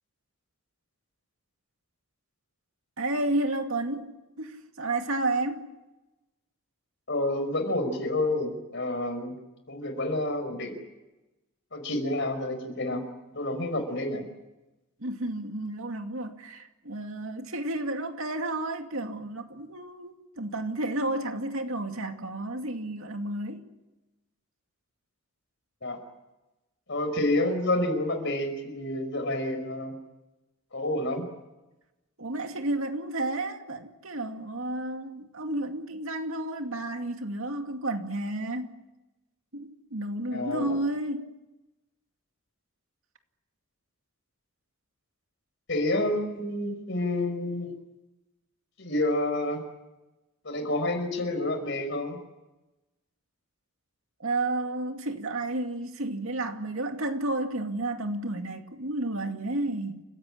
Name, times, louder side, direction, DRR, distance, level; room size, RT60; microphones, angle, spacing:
voice 1, 3.0-4.1 4.4-5.7 15.0-23.7 32.2-38.8 39.5-41.3 54.2-60.0, right 2 dB, 70° right, 2.4 m, -31 dB
voice 2, 7.1-9.3 9.7-10.7 11.7-13.1 13.3-14.3 25.8-26.0 26.9-30.0 30.7-31.2 40.3-40.8 45.7-47.7 48.8-49.6 50.4-52.2, left 1 dB, 55° left, 5.2 m, -29 dB
29.0 x 16.5 x 10.0 m
head